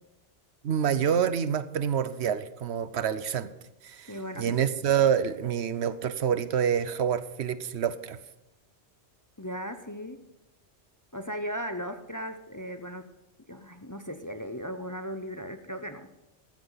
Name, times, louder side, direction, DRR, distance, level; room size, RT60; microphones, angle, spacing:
voice 1, 0.6-3.5 3.8-8.2, right 8 dB, 70° right, 14 dB, 1.0 m, -27 dB
voice 2, 4.1-4.6 9.4-10.2 11.1-13.1 13.5-16.1, equal, 20° left, 8 dB, 0.6 m, -37 dB
14.5 x 13.5 x 4.0 m, 0.99 s
omnidirectional pair, 1.2 m